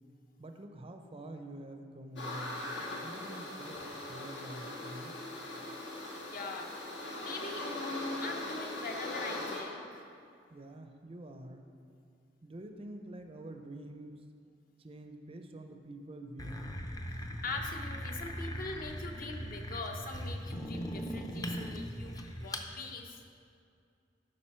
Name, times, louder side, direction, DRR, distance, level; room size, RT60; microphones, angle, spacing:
voice 1, 0.4-5.2 10.5-11.7 12.4-14.2 14.8-16.8, right 1 dB, 30° right, 5 dB, 0.5 m, -47 dB
sound 1, 2.2-9.6, left 1 dB, 85° left, 1.7 m, -40 dB
voice 2, 6.3-6.7 7.2-7.7 8.2-10.0 17.4-22.1 22.4-23.2, left 3 dB, 50° left, 3 dB, 0.8 m, -42 dB
sound 2, 16.4-22.7, equal, 20° left, 0.5 m, -39 dB
11.5 x 5.0 x 4.4 m, 2.4 s
head